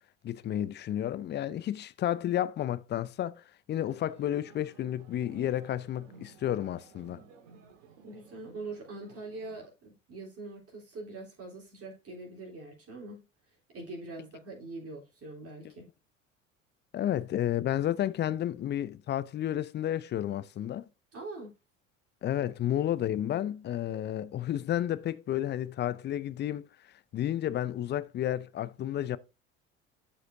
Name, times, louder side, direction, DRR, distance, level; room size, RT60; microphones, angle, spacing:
voice 1, 0.2-7.2 16.9-20.8 22.2-26.7 27.1-29.2, left 11 dB, 30° left, 0.5 m, -31 dB
sound 1, 3.9-9.7, right 5 dB, 65° right, 1.9 m, -55 dB
voice 2, 8.0-13.3 13.7-15.9 21.1-21.5 23.9-24.0, right 2 dB, 35° right, 3.5 m, -43 dB
11.5 x 5.0 x 2.7 m
figure-of-eight pair, 65°, 39 cm